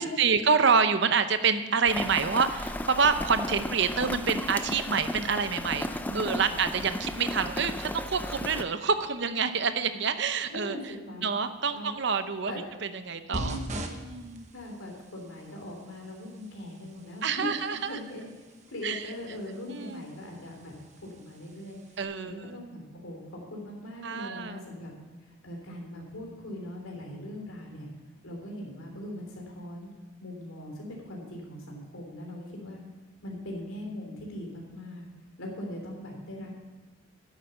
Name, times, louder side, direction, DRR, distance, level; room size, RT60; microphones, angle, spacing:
voice 1, 0.0-10.8 11.2-12.5 13.1-13.6 14.0-14.5 17.2-18.0 18.8-19.1 19.7-20.0 22.0-22.6 24.0-24.6, right 5 dB, 55° right, 10 dB, 0.7 m, -27 dB
Rain, 1.9-8.6, left 1 dB, 10° left, 0.4 m, -34 dB
voice 2, 6.1-6.5 10.5-11.3 11.7-11.9 12.4-12.6 13.3-13.8 14.5-17.5 17.8-18.3 18.7-20.7 21.0-24.9 25.2-27.9 28.2-29.9 30.2-32.8 33.2-35.1 35.4-36.5, left 1 dB, 80° left, 0 dB, 3.5 m, -40 dB
sound 1, 13.3-22.0, right 1 dB, 35° right, 1.0 m, -43 dB
10.5 x 8.3 x 6.9 m, 1.3 s
head